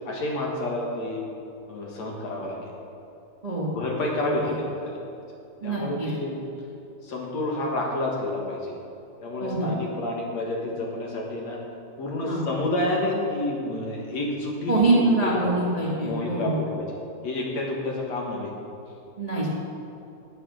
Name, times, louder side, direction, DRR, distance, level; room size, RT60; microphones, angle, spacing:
voice 1, 0.1-1.2 1.7-2.7 3.7-5.0 5.6-6.4 7.0-8.7 9.2-11.6 12.0-15.6 16.0-16.9 17.2-18.5, left 1 dB, 60° left, -2 dB, 2.8 m, -29 dB
voice 2, 3.4-3.7 5.6-6.1 9.4-9.7 12.3-12.4 14.7-16.7 19.2-19.5, right 2 dB, 15° right, -5 dB, 1.5 m, -24 dB
18.5 x 7.3 x 6.4 m, 2.7 s
omnidirectional pair, 3.7 m